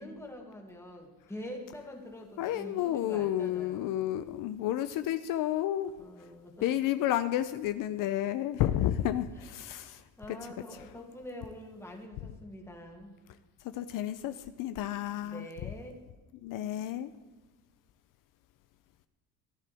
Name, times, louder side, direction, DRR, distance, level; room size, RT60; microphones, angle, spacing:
voice 1, 0.0-3.9 6.0-6.7 8.7-9.1 9.3-13.1 15.2-16.0, left 1 dB, 10° left, 1 dB, 2.1 m, -46 dB
voice 2, 2.4-5.9 6.6-10.4 13.7-15.5 16.3-17.1, left 12 dB, 70° left, 11 dB, 0.6 m, -31 dB
15.0 x 10.5 x 3.5 m, 1.3 s
cardioid pair, 130°, 33 cm